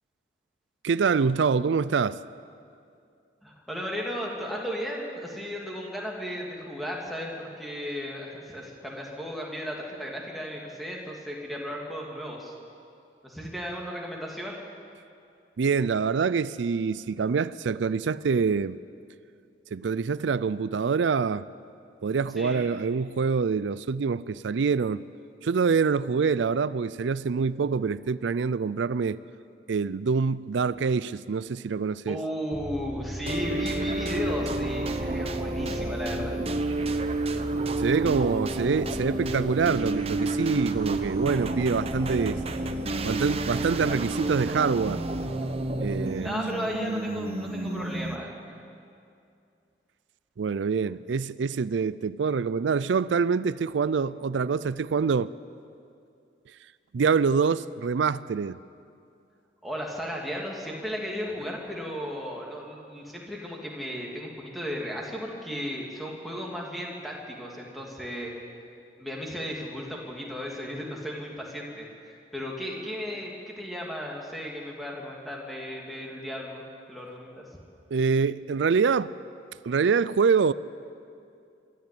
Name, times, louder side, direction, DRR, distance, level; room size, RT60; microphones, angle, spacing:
voice 1, 0.8-2.2 15.6-18.8 19.7-21.4 22.0-25.0 25.4-29.2 29.7-32.2 37.8-42.4 43.0-45.0 45.8-46.3 50.4-55.3 56.9-58.6 77.9-79.1 79.6-80.5, right 5 dB, 80° right, 0.4 m, -25 dB
voice 2, 3.4-12.5 13.2-14.6 22.4-22.6 32.1-36.3 46.2-48.6 59.6-68.3 69.0-76.6 76.9-77.4, equal, ahead, 2.7 m, -35 dB
sound 1, 32.5-45.9, right 1 dB, 15° right, 1.8 m, -40 dB
sound 2, 33.3-48.4, right 2 dB, 30° right, 0.9 m, -30 dB
23.0 x 13.5 x 8.6 m
head